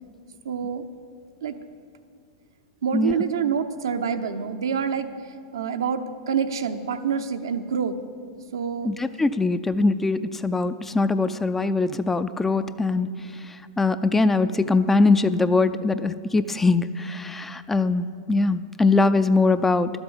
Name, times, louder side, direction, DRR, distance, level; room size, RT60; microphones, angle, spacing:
voice 1, 0.4-0.8 1.4-1.6 2.8-5.1 5.5-7.9 8.5-8.9, right 7 dB, 80° right, 7 dB, 0.8 m, -26 dB
voice 2, 8.8-13.1 13.8-19.9, left 3 dB, 10° left, 12 dB, 0.4 m, -22 dB
11.5 x 8.0 x 7.1 m, 2.3 s
hypercardioid pair, 105°, 2 cm